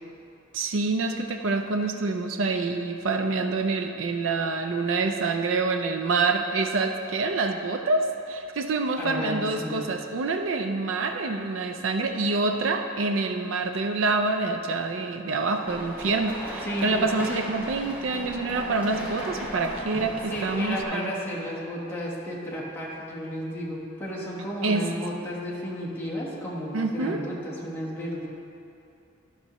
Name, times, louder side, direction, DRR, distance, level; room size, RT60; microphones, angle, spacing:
voice 1, 0.5-21.1 24.6-24.8 26.7-27.2, right 3 dB, 75° right, 5 dB, 0.5 m, -26 dB
voice 2, 9.0-9.8 16.6-17.0 20.3-28.3, equal, 10° left, -6 dB, 1.3 m, -33 dB
sound 1, 15.6-20.8, equal, 10° right, 1.3 m, -36 dB
11.5 x 6.6 x 3.0 m, 2.7 s
head